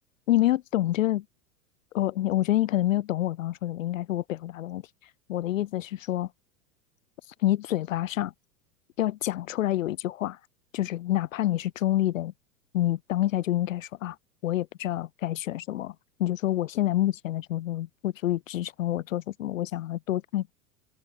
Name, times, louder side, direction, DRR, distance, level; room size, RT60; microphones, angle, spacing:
voice 1, 0.3-1.2 1.9-4.8 5.3-6.3 7.4-8.3 9.0-10.4 10.7-12.3 12.7-14.2 14.4-15.9 16.2-20.5, left 14 dB, 65° left, 0.8 m, -27 dB
figure-of-eight pair, 95°, 43 cm